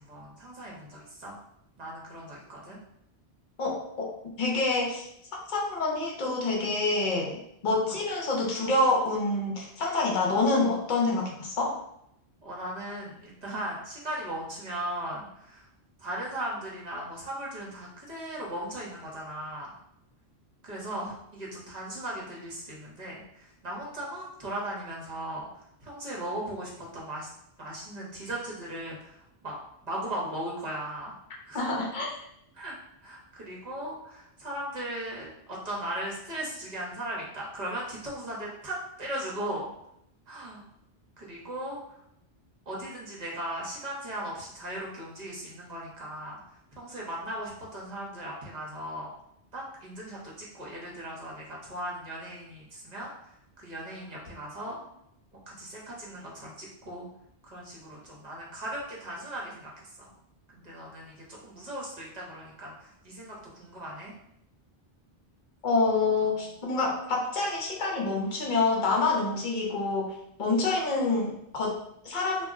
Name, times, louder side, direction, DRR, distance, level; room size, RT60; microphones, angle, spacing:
voice 1, 0.0-1.3 1.8-2.8 7.9-8.0 12.4-15.6 16.0-19.7 20.6-27.3 27.6-29.5 29.8-31.1 31.4-31.7 32.5-32.8 33.0-39.7 40.3-40.6 41.2-42.0 42.7-49.1 49.5-54.8 55.5-57.1 57.4-60.1 60.5-64.1 66.2-66.5, right 1 dB, 45° right, -4 dB, 0.9 m, -38 dB
voice 2, 3.6-4.1 4.4-5.1 5.3-11.8 31.5-32.2 65.6-70.1 70.4-72.5, left 3 dB, 55° left, -2 dB, 0.7 m, -27 dB
2.3 x 2.0 x 3.5 m, 0.76 s
omnidirectional pair, 1.1 m